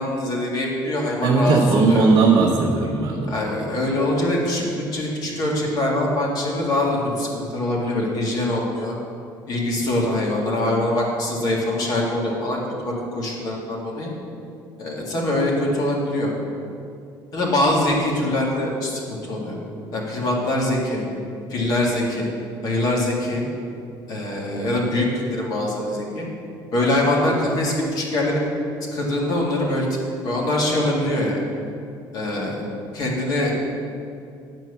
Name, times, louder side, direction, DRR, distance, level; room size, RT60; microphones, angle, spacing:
voice 1, 0.0-2.1 3.3-4.6 4.9-9.0 9.5-14.1 14.8-16.3 17.3-19.6 19.9-21.0 21.5-22.3 22.6-23.4 24.1-26.3 26.7-28.4 28.9-29.9 30.2-31.4 32.1-32.7 32.9-33.5, left 1 dB, 45° left, -3 dB, 1.9 m, -23 dB
voice 2, 1.2-3.3, right 4 dB, 50° right, -3 dB, 0.9 m, -18 dB
9.6 x 4.5 x 7.0 m, 2.5 s
cardioid pair, 160°, 9 cm